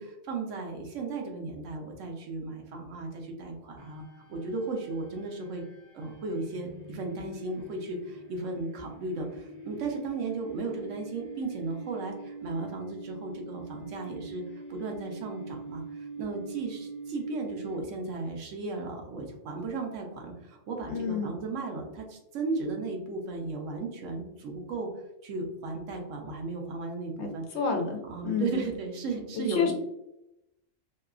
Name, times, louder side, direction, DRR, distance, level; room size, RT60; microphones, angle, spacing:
voice 1, 0.0-4.0 4.3-5.6 5.9-14.4 14.7-24.9 25.2-27.4 28.0-29.7, right 3 dB, 85° right, 2 dB, 1.0 m, -35 dB
sound 1, 3.8-18.2, right 3 dB, 30° right, 0.9 m, -44 dB
voice 2, 20.9-21.3 27.2-28.6 29.4-29.7, left 5 dB, 70° left, 3 dB, 0.8 m, -29 dB
2.8 x 2.3 x 2.3 m, 0.87 s
omnidirectional pair, 1.3 m